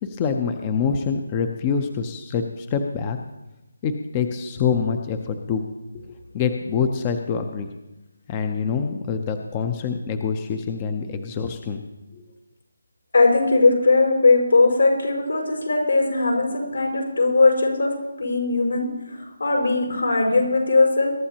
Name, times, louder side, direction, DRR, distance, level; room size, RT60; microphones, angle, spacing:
voice 1, 0.0-3.2 3.8-5.6 5.9-6.0 6.3-7.7 8.3-11.8, left 6 dB, 15° left, 6 dB, 0.5 m, -25 dB
voice 2, 13.1-21.1, left 3 dB, 80° left, 1 dB, 5.3 m, -19 dB
22.0 x 12.0 x 2.9 m, 0.99 s
hypercardioid pair, 175°, 0 cm